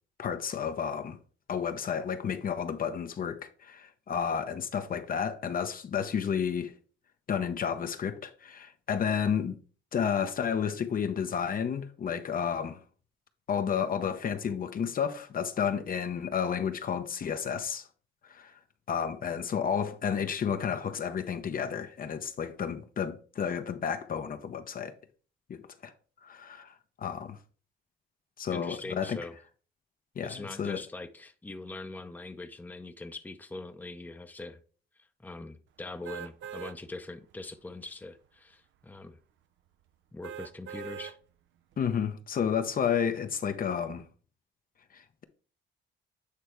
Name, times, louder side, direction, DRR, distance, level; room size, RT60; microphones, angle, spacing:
voice 1, 0.2-1.2 1.5-6.7 7.3-9.6 9.9-12.8 13.5-17.9 18.3-18.6 18.9-24.9 25.5-25.9 26.2-27.4 28.4-29.2 30.2-30.8 41.8-44.0 44.9-45.2, left 7 dB, 45° left, 0.7 m, -31 dB
voice 2, 28.5-29.4 30.2-34.6 35.0-39.2 40.1-41.2, left 2 dB, 10° left, 0.6 m, -42 dB
sound 1, 36.0-36.8 37.3-37.4 40.2-41.2 41.7-41.8, right 9 dB, 70° right, 0.5 m, -41 dB
8.4 x 3.3 x 4.5 m
cardioid pair, 90°, 20 cm